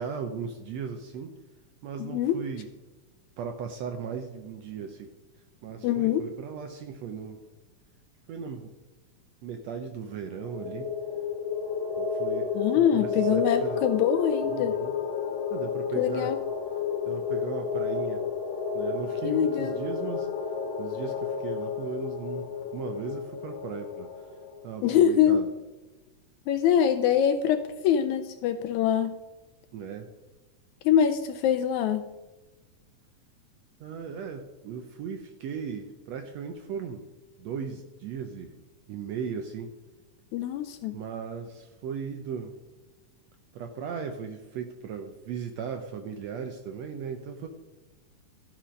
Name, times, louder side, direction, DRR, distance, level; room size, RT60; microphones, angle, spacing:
voice 1, 0.0-1.4 1.8-2.7 3.4-5.1 5.6-7.4 8.3-8.7 9.4-10.9 12.0-13.8 14.4-14.9 15.5-16.3 17.0-18.3 18.7-20.3 20.8-24.1 24.6-25.5 29.7-30.1 33.8-37.1 37.4-38.6 38.9-39.7 40.9-42.5 43.5-47.5, right 6 dB, 75° right, 6 dB, 1.6 m, -37 dB
voice 2, 2.0-2.4 5.8-6.3 12.5-14.7 16.0-16.4 19.2-19.8 24.8-25.4 26.5-29.2 30.8-32.1 40.3-41.0, left 9 dB, 80° left, 8 dB, 1.7 m, -24 dB
sound 1, 10.3-24.7, left 6 dB, 60° left, 2.5 m, -31 dB
13.0 x 6.0 x 5.1 m, 1.2 s
omnidirectional pair, 3.7 m